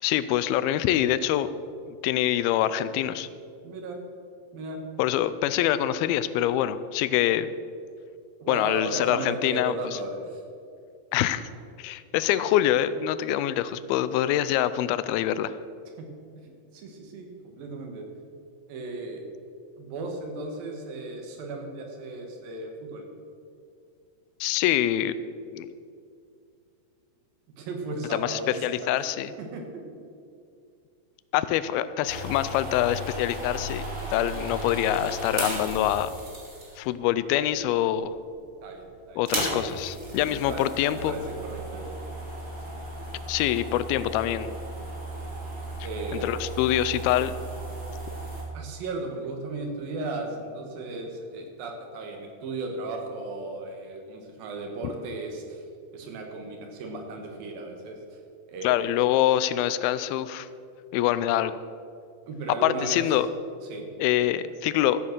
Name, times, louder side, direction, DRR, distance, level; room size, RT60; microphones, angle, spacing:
voice 1, 0.0-1.5 1.9-3.3 5.0-7.5 8.5-9.7 11.1-11.4 11.8-15.5 24.4-25.2 25.5-25.7 28.1-29.3 31.3-33.8 34.1-36.1 36.8-38.2 39.2-41.1 43.3-44.5 46.2-47.4 54.8-54.9 58.6-60.5 60.9-61.5 62.6-63.3 64.0-65.0, left 12 dB, 85° left, 14 dB, 2.5 m, -25 dB
voice 2, 3.6-4.0 4.5-4.8 8.4-10.4 16.0-16.1 16.4-18.0 18.7-19.2 19.8-23.1 27.6-28.7 29.0-29.8 38.6-39.2 40.0-42.0 45.8-46.4 48.5-55.7 55.9-58.2 58.5-59.1 62.3-63.0 63.6-63.9, right 2 dB, 70° right, 3 dB, 3.3 m, -36 dB
sound 1, 32.0-36.9 37.7-38.2 38.5-38.6 39.1-48.4, right 1 dB, 25° right, 2.5 m, -35 dB
14.0 x 8.6 x 6.6 m, 2.4 s
omnidirectional pair, 4.3 m